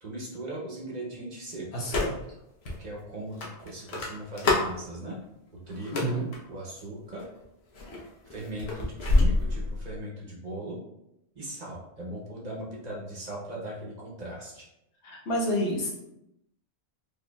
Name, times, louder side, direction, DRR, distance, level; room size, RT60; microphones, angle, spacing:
voice 1, 0.0-1.9 2.8-5.2 5.7-6.2 6.5-7.3 8.3-10.8 11.4-14.7, right 1 dB, 45° right, -3 dB, 0.9 m, -39 dB
voice 2, 1.7-2.1 5.9-6.3 15.0-15.9, equal, 90° left, -3 dB, 1.3 m, -29 dB
sound 1, 1.8-2.3 2.6-2.8 3.4-4.8 5.7-6.4 7.1-7.4 7.7-10.0, left 2 dB, 70° left, 1.1 m, -26 dB
4.7 x 2.6 x 2.2 m, 0.85 s
omnidirectional pair, 1.1 m